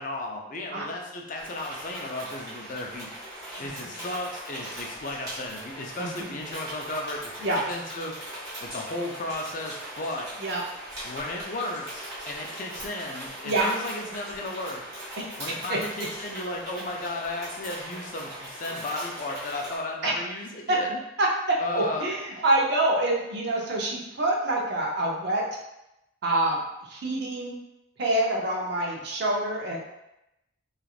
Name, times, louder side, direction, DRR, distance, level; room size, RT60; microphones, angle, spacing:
voice 1, 0.0-3.1 3.6-8.2 8.6-10.3 11.0-14.8 15.4-21.0 21.6-22.1, left 2 dB, 40° left, 1 dB, 0.4 m, -34 dB
sound 1, 1.4-19.8, right 1 dB, 20° right, 1.3 m, -40 dB
voice 2, 6.0-6.4 7.4-7.6 10.4-10.6 13.4-13.7 15.2-15.3 15.7-15.8 20.0-20.1 20.7-20.8 21.2-25.4 26.2-27.6 28.0-29.8, right 2 dB, 55° right, -1 dB, 0.6 m, -26 dB
3.2 x 2.4 x 2.4 m, 0.90 s
head